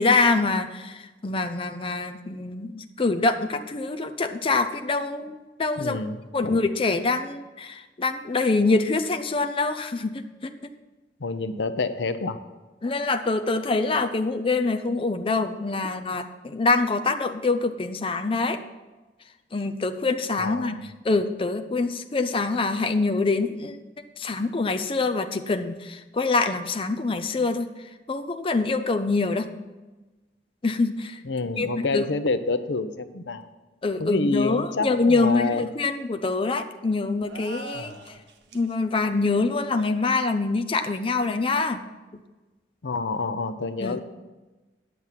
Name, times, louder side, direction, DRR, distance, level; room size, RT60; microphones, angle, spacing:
voice 1, 0.0-6.0 6.3-10.5 12.8-18.6 19.5-23.8 24.2-27.7 28.1-29.5 30.6-31.2 31.6-32.1 33.8-38.1 38.5-41.8 43.8-44.0, left 3 dB, 30° left, 8 dB, 0.5 m, -25 dB
voice 2, 5.8-6.2 6.4-6.6 11.2-12.4 20.4-20.8 31.2-33.4 34.0-35.6 37.7-37.9 42.8-44.0, left 3 dB, 85° left, 11 dB, 0.7 m, -28 dB
sound 1, 37.2-38.7, right 4 dB, 75° right, 1.0 m, -42 dB
9.4 x 7.6 x 5.7 m, 1.2 s
head